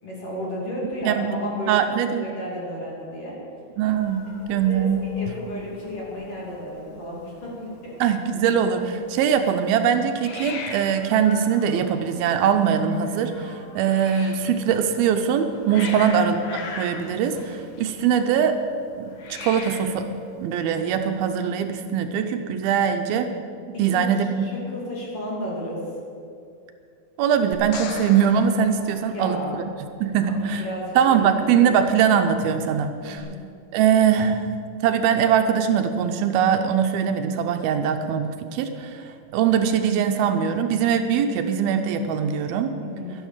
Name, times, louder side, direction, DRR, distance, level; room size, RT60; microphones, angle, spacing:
voice 1, 0.0-3.4 4.5-7.9 15.8-16.0 23.8-24.0 24.4-25.8 29.1-29.6 30.3-31.3 31.7-31.8 33.1-33.4 42.8-43.1, equal, 40° left, -4 dB, 3.3 m, -33 dB
voice 2, 1.0-1.4 1.7-2.2 3.8-5.0 8.0-18.6 19.0-20.1 20.4-23.3 23.8-24.5 27.2-29.4 30.0-30.7 31.0-33.3 33.7-34.5 34.8-42.8, right 8 dB, 80° right, 7 dB, 2.5 m, -22 dB
Hiss, 3.9-21.2, left 4 dB, 60° left, 2.2 m, -41 dB
sound 1, 27.5-29.8 33.2-33.3, left 6 dB, 85° left, 1.5 m, -38 dB
12.5 x 11.0 x 7.3 m, 2.4 s
omnidirectional pair, 4.4 m